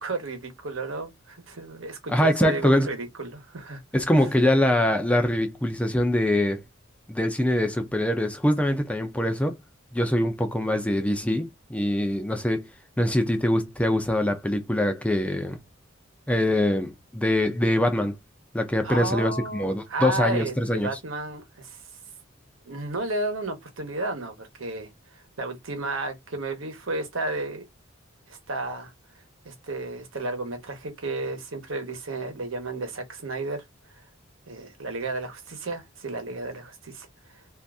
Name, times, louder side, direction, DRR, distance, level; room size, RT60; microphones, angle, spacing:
voice 1, 0.0-3.8 18.8-21.8 22.6-27.6 28.3-28.9 29.4-33.6 34.5-37.6, right 2 dB, 80° right, 1.1 m, -33 dB
voice 2, 2.1-2.9 3.9-6.6 7.1-9.6 9.9-12.7 13.0-15.6 16.3-18.2 18.5-20.9, left 1 dB, 5° left, 0.5 m, -23 dB
2.7 x 2.5 x 3.5 m
head